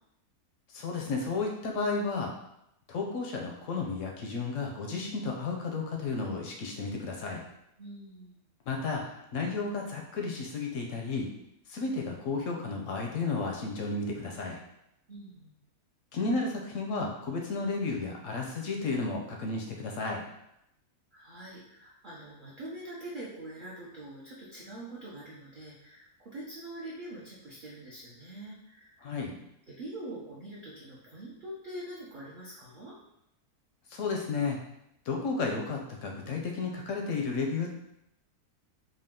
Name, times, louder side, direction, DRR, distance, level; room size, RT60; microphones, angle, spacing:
voice 1, 0.7-2.3 2.9-7.4 8.7-11.3 11.7-14.6 16.1-20.2 29.0-29.4 33.9-34.6 35.1-37.7, left 3 dB, 70° left, 0 dB, 0.8 m, -33 dB
voice 2, 7.8-8.5 15.1-15.5 21.1-29.4 29.7-32.9, right 1 dB, 50° right, -6 dB, 0.6 m, -44 dB
3.7 x 2.3 x 3.6 m, 0.81 s
omnidirectional pair, 1.6 m